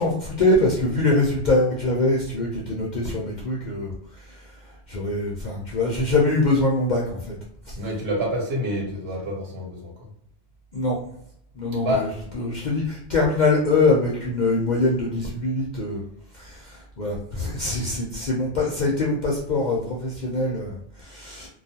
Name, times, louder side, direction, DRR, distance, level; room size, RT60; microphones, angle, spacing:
voice 1, 0.0-7.4 7.6-7.8 10.7-11.0 11.5-16.0 16.3-21.5, left 2 dB, 55° left, -3 dB, 0.5 m, -24 dB
voice 2, 7.7-9.9 11.8-12.1, equal, 60° right, -2 dB, 1.1 m, -27 dB
2.3 x 2.3 x 2.7 m, 0.70 s
omnidirectional pair, 1.2 m